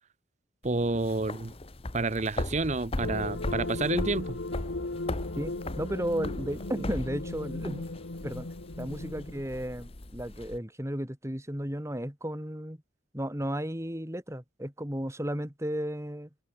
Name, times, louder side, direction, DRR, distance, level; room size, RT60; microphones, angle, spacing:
sound 1, 0.6-10.6, left 1 dB, 30° left, 1.0 m, -38 dB
voice 1, 0.6-1.5 1.9-4.4, right 3 dB, 35° right, 0.9 m, -29 dB
sound 2, 3.0-9.4, left 2 dB, 70° left, 1.3 m, -37 dB
voice 2, 5.4-7.8 8.2-8.5 8.8-12.8 13.1-16.3, equal, 15° right, 2.5 m, -34 dB
head